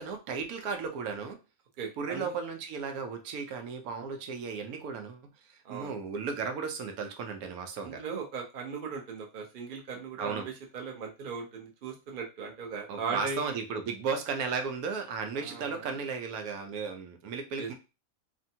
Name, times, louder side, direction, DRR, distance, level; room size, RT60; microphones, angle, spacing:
voice 1, 0.0-1.4 2.0-8.0 10.2-10.5 12.9-17.7, right 5 dB, 85° right, 5 dB, 1.1 m, -35 dB
voice 2, 1.8-2.3 5.6-5.9 7.8-13.6 15.4-15.9 17.6-17.7, right 5 dB, 50° right, 0 dB, 0.7 m, -38 dB
3.4 x 2.1 x 2.7 m, 0.30 s
omnidirectional pair, 1.5 m